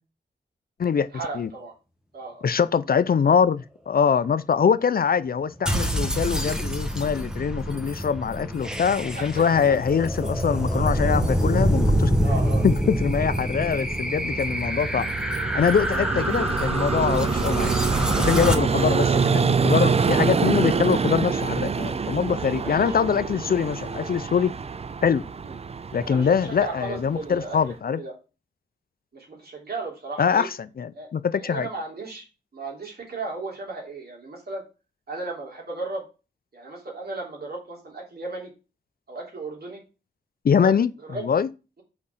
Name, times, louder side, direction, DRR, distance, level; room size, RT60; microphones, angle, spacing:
voice 1, 1.1-1.7 2.1-2.5 9.1-9.8 12.2-12.7 18.6-19.4 22.6-22.9 25.4-25.6 26.0-27.6 27.9-28.1 29.1-30.5 30.9-31.1 31.3-32.2 32.5-34.6 35.1-36.0 36.5-38.5 39.1-39.8 40.5-40.7 41.0-41.3, right 3 dB, 60° right, 3.2 m, -35 dB
voice 2, 2.4-12.1 12.6-15.1 15.5-17.7 18.2-24.5 25.0-25.2 25.9-28.0 30.2-31.7 40.4-40.9 41.2-41.5, left 7 dB, 55° left, 0.5 m, -23 dB
sound 1, 5.7-18.6, equal, 5° right, 1.2 m, -26 dB
Vehicle, 13.0-27.7, right 5 dB, 35° right, 0.4 m, -26 dB
6.3 x 5.0 x 5.6 m
wide cardioid pair, 95°, 18 cm